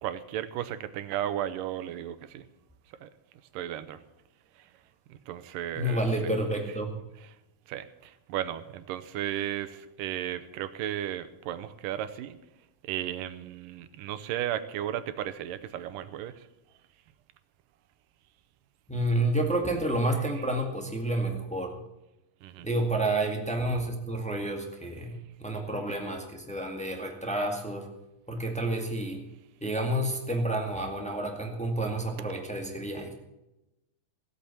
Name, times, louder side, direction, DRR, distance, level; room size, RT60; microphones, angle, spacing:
voice 1, 0.0-2.5 2.9-3.1 3.5-4.0 4.5-4.8 5.1-6.1 7.2-7.4 7.7-12.4 12.8-16.5 20.3-20.4 22.4-22.7, right 11 dB, 80° right, 12 dB, 2.3 m, -35 dB
voice 2, 5.7-7.0 18.9-21.8 22.6-27.9 28.3-29.2 29.6-33.1, right 1 dB, 5° left, 2 dB, 0.5 m, -30 dB
16.0 x 8.5 x 7.1 m, 0.94 s
omnidirectional pair, 4.0 m